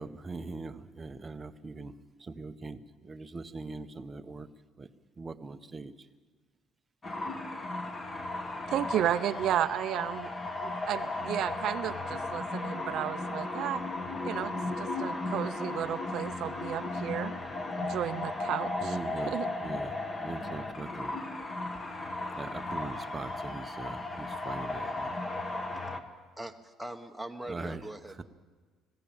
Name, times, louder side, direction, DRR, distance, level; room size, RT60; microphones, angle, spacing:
voice 1, 0.0-1.9 2.2-4.5 4.8-4.9 5.2-5.9 18.8-19.3 19.6-19.9 20.2-21.2 22.4-25.1 27.5-27.8, right 3 dB, 15° right, 0.8 m, -41 dB
sound 1, 7.0-26.0, left 2 dB, 20° left, 1.2 m, -35 dB
voice 2, 8.7-10.3 10.6-13.8 14.2-17.3 17.8-19.0 19.2-19.5, right 11 dB, 50° right, 0.6 m, -33 dB
voice 3, 26.4-28.2, right 1 dB, ahead, 1.0 m, -41 dB
20.5 x 16.0 x 8.8 m
cardioid pair, 165°, 0 cm